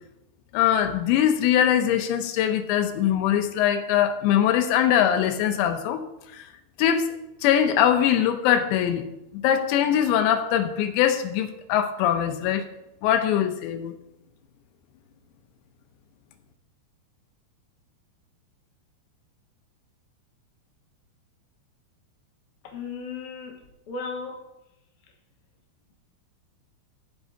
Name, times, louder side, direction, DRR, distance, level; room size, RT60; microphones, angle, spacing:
voice 1, 0.5-6.0 6.3-6.4 6.8-7.1 7.4-12.7 13.0-13.9, left 10 dB, 85° left, 7 dB, 3.0 m, -22 dB
voice 2, 22.6-24.4, left 4 dB, 70° left, 1 dB, 1.9 m, -36 dB
16.5 x 6.1 x 2.7 m, 0.87 s
omnidirectional pair, 5.1 m